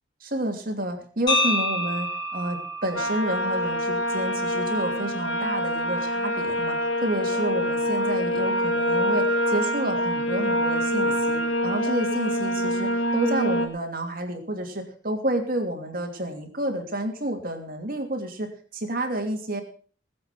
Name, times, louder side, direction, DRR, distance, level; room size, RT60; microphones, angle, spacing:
voice 1, 0.2-19.6, right 1 dB, 45° right, 4 dB, 2.9 m, -30 dB
sound 1, 1.3-5.3, left 1 dB, 25° left, 3.9 m, -29 dB
sound 2, 3.0-13.7, equal, 85° left, 2.2 m, -25 dB
19.5 x 8.1 x 6.0 m, 0.43 s
head